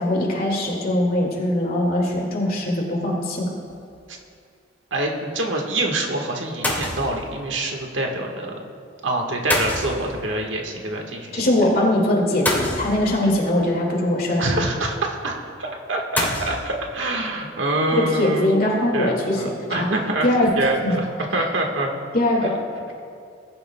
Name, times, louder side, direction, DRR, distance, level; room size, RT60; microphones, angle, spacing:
voice 1, 0.0-3.5 11.3-14.5 18.0-19.4 19.7-19.9 20.2-20.5 20.8-21.0 22.1-22.5, left 1 dB, 50° left, -2 dB, 2.1 m, -21 dB
sound 1, 3.7-4.0 6.6-7.3 9.5-10.4 12.5-13.4 16.2-16.6, left 1 dB, 10° left, 2.0 m, -25 dB
voice 2, 4.9-8.6 9.0-11.4 14.4-18.5 18.9-20.3 20.6-21.1 21.3-21.9, right 2 dB, 75° right, 1 dB, 1.5 m, -25 dB
20.5 x 11.5 x 2.3 m, 2.3 s
head